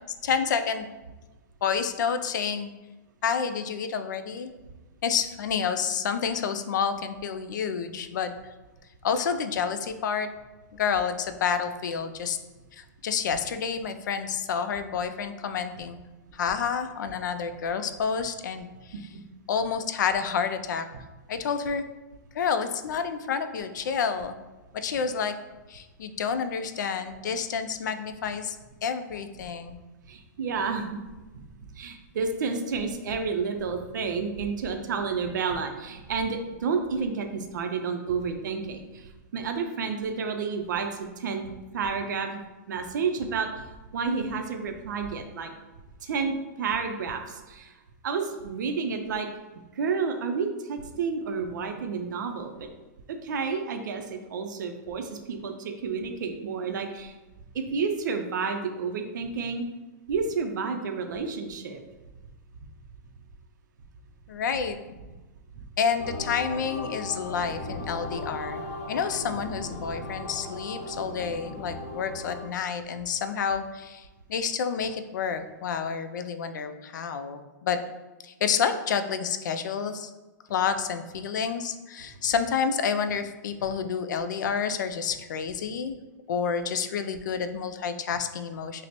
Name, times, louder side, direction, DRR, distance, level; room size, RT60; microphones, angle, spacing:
voice 1, 0.2-0.9 1.6-2.7 3.2-4.5 5.0-8.3 9.0-10.3 10.7-12.4 12.7-16.0 16.3-18.9 19.5-20.9 21.3-21.8 22.3-24.3 24.7-25.3 25.7-28.6 28.8-29.8 64.3-64.8 65.8-77.8 78.2-80.1 80.5-86.0 86.3-88.9, left 6 dB, 80° left, 9 dB, 0.3 m, -29 dB
voice 2, 30.1-31.0 31.7-40.9 41.2-42.4 42.7-43.6 43.9-45.5 46.0-49.3 49.7-52.7 53.1-57.1 57.5-59.6 60.1-61.8 65.5-65.6, right 5 dB, 85° right, 5 dB, 0.5 m, -30 dB
sound 1, 66.0-72.5, left 2 dB, 55° left, 1.0 m, -37 dB
5.0 x 2.0 x 2.9 m, 1.1 s
hypercardioid pair, 160°, 10 cm